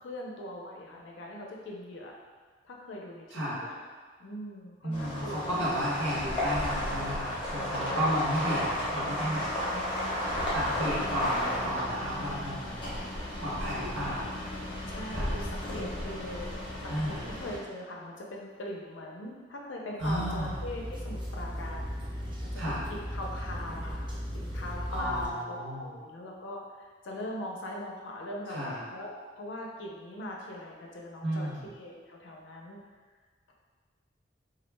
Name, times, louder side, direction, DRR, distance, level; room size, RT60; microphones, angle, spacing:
voice 1, 0.0-2.1 2.6-3.9 4.2-5.8 7.8-8.3 9.7-10.4 14.0-14.2 14.9-16.5 17.1-24.1 24.3-32.8, left 1 dB, 75° left, -1 dB, 0.4 m, -41 dB
voice 2, 3.3-3.6 4.8-9.4 10.5-12.9 13.4-14.3 15.1-15.3 16.9-17.2 20.0-20.5 22.5-22.8 24.9-25.9 28.5-28.8 31.2-31.6, equal, 85° right, -8 dB, 0.8 m, -33 dB
sound 1, 4.9-17.6, left 1 dB, 25° left, 0.7 m, -33 dB
sound 2, 20.0-25.3, equal, 25° right, 0.4 m, -37 dB
2.3 x 2.1 x 3.1 m, 1.5 s
head